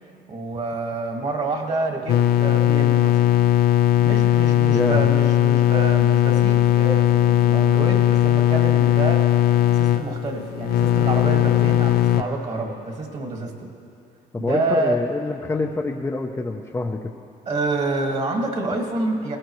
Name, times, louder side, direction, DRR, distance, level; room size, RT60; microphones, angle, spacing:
voice 1, 0.3-3.2 4.0-9.3 9.7-13.7 14.4-15.0 17.5-19.4, right 2 dB, 40° right, 1 dB, 2.0 m, -27 dB
sound 1, 2.1-12.2, left 12 dB, 70° left, 0.6 m, -18 dB
voice 2, 4.7-5.1 14.3-17.0, left 2 dB, 15° left, 2 dB, 0.7 m, -26 dB
19.5 x 16.5 x 3.2 m, 2.6 s
cardioid pair, 110°, 17 cm